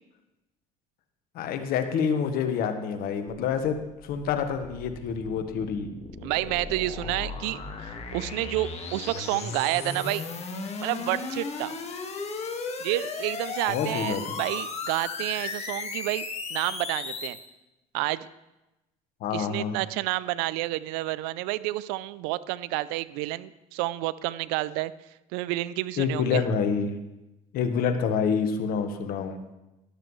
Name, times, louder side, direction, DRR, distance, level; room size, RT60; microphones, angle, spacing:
voice 1, 1.3-3.8 4.0-5.9 13.7-14.2 19.2-19.7 26.0-26.9 27.5-29.4, left 6 dB, 65° left, 8 dB, 1.3 m, -27 dB
sound 1, 3.3-17.4, left 4 dB, 40° left, 1.8 m, -36 dB
voice 2, 6.2-10.2 10.8-11.7 12.8-17.4 17.9-18.3 19.3-24.9 25.3-26.4, right 18 dB, 80° right, 17 dB, 0.4 m, -30 dB
13.0 x 11.5 x 3.2 m, 0.97 s
supercardioid pair, 70°, 16 cm